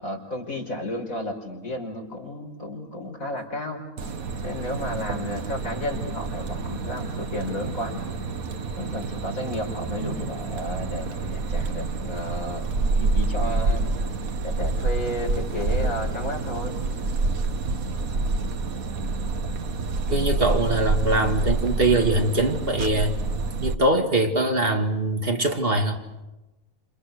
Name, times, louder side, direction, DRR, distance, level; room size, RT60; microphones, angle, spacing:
voice 1, 0.0-3.8 4.4-8.0 8.8-12.7 13.0-13.9 14.4-16.8, left 1 dB, 75° left, 2 dB, 5.3 m, -32 dB
sound 1, 4.0-23.8, right 3 dB, 85° right, 1.7 m, -27 dB
voice 2, 20.1-23.2 23.6-26.0, right 2 dB, 45° right, 3 dB, 2.3 m, -23 dB
29.5 x 28.0 x 6.6 m, 1.0 s
omnidirectional pair, 1.4 m